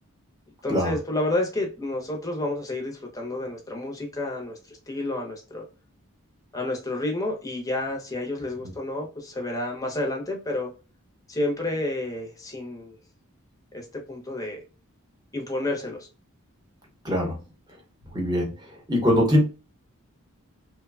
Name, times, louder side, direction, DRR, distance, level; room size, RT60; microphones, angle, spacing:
voice 1, 0.6-5.6 6.5-10.7 11.3-13.0 13.7-14.6 15.3-16.1, left 2 dB, 15° left, 1 dB, 0.6 m, -30 dB
voice 2, 17.0-17.4 18.1-18.5 18.9-19.4, left 1 dB, 20° right, -1 dB, 0.8 m, -21 dB
3.1 x 2.1 x 2.3 m, 0.32 s
head